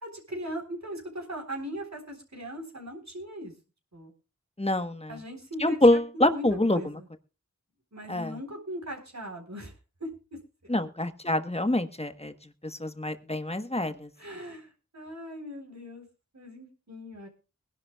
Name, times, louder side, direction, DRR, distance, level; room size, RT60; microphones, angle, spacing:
voice 1, 0.0-3.5 3.9-4.1 5.1-7.1 7.9-9.7 10.0-10.1 14.2-16.0 16.3-17.3, equal, 60° right, 2 dB, 4.0 m, -39 dB
voice 2, 4.6-5.2 5.6-6.8 8.1-8.3 10.7-12.3 12.6-14.1, left 1 dB, 20° left, 9 dB, 1.2 m, -25 dB
22.5 x 11.0 x 2.3 m, 0.32 s
wide cardioid pair, 50°, 31 cm